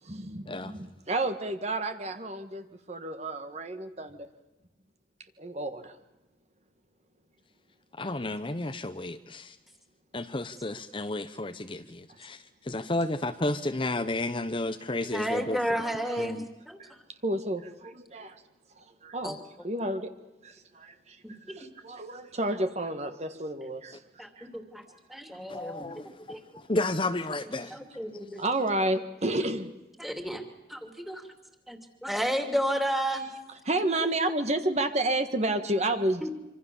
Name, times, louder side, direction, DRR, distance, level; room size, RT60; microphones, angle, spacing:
voice 1, 0.0-4.3 5.4-6.0 15.8-16.3 17.2-18.4 18.8-19.4 19.6-20.1 20.4-21.2 21.5-24.0 24.4-24.5 24.9-25.0 28.4-29.7 33.6-36.3, right 1 dB, 35° right, 8 dB, 1.6 m, -31 dB
voice 2, 7.9-9.6 10.1-15.6 16.2-16.5 25.5-27.7, left 2 dB, 30° left, 9 dB, 0.8 m, -32 dB
voice 3, 15.1-16.8 19.2-19.4 21.2-21.7 24.2-24.8 25.1-25.9 26.3-26.4 27.7-28.4 30.0-30.4 30.7-31.2 31.7-33.3 36.2-36.3, equal, ahead, 5 dB, 2.8 m, -32 dB
26.0 x 25.5 x 7.1 m, 0.98 s
head